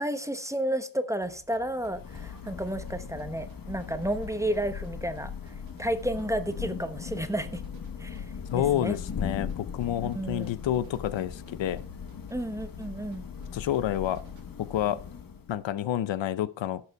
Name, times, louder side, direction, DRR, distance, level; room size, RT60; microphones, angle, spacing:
voice 1, 0.0-7.6 8.0-8.3 8.5-9.0 10.0-10.5 12.3-13.3, right 1 dB, 5° right, 1.0 m, -32 dB
sound 1, 1.2-14.4, right 5 dB, 80° right, 2.0 m, -56 dB
Thunder / Rain, 1.5-15.8, left 6 dB, 50° left, 1.3 m, -39 dB
voice 2, 8.5-11.8 13.5-14.2 14.6-15.0 15.5-16.8, left 11 dB, 75° left, 0.7 m, -29 dB
12.0 x 6.7 x 4.7 m
cardioid pair, 80°, 45 cm